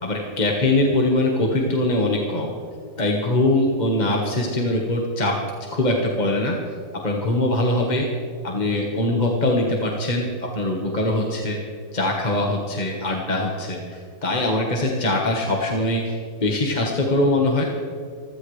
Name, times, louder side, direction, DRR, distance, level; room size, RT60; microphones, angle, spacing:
voice 1, 0.0-2.5 3.0-5.3 5.7-6.6 7.0-8.1 8.4-10.3 10.5-11.6 11.9-13.8 14.2-17.6, left 1 dB, 30° left, -1 dB, 1.4 m, -22 dB
26.0 x 15.0 x 3.3 m, 2.2 s
omnidirectional pair, 1.7 m